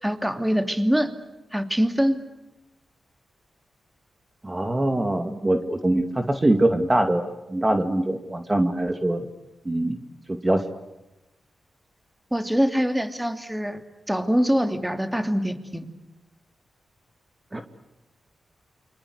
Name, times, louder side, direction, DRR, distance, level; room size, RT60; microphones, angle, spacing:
voice 1, 0.0-1.1 1.5-2.2 12.3-13.8 14.1-15.9, equal, 5° right, 8 dB, 2.7 m, -24 dB
voice 2, 4.4-9.3 9.7-10.0 10.4-10.6 17.5-17.6, right 1 dB, 25° right, 7 dB, 2.4 m, -23 dB
29.0 x 25.0 x 8.1 m, 0.96 s
cardioid pair, 60°, 0 cm